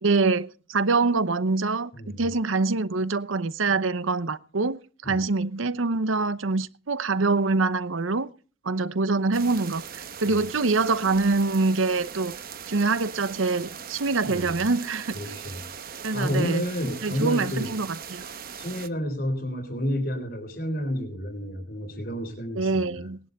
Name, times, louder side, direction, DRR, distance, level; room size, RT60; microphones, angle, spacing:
voice 1, 0.0-8.3 8.6-12.4 12.7-15.2 16.0-16.6 17.0-18.2 22.6-23.2, right 3 dB, 85° right, 0.8 m, -25 dB
voice 2, 1.9-2.2 5.0-5.2 10.3-10.4 14.2-14.6 15.1-15.6 16.1-17.8 18.6-23.1, equal, 50° left, 3.8 m, -30 dB
sound 1, 9.3-18.9, right 7 dB, 45° right, 1.0 m, -40 dB
19.5 x 11.0 x 4.0 m
head